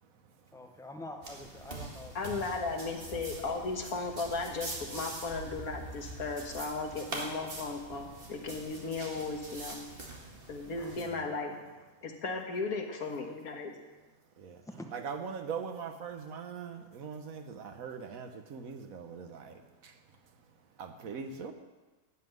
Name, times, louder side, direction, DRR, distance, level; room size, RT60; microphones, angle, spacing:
voice 1, 0.5-2.7 2.9-3.7 14.7-14.9, left 1 dB, 5° left, 4 dB, 0.7 m, -47 dB
sound 1, 1.2-11.1, right 2 dB, 40° right, 2.0 m, -44 dB
voice 2, 2.2-9.8 10.5-11.5 12.0-13.7, left 4 dB, 80° left, 3 dB, 1.9 m, -36 dB
voice 3, 10.8-11.4 14.4-14.6 14.9-19.5 20.8-21.5, right 6 dB, 70° right, 7 dB, 1.4 m, -41 dB
12.5 x 5.7 x 9.4 m, 1.2 s
omnidirectional pair, 1.5 m